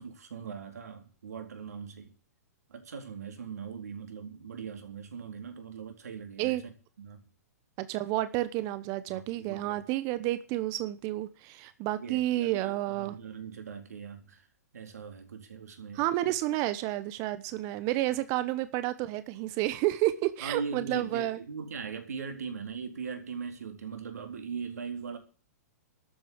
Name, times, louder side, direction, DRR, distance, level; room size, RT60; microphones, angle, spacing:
voice 1, 0.0-2.1 2.7-6.7 7.0-7.2 9.1-9.8 12.0-14.5 14.7-16.0 20.4-25.2, right 6 dB, 70° right, 4.1 m, -40 dB
voice 2, 7.8-13.2 15.9-21.4, right 16 dB, 40° right, 1.1 m, -30 dB
13.0 x 8.1 x 8.2 m
figure-of-eight pair, 115°, 9 cm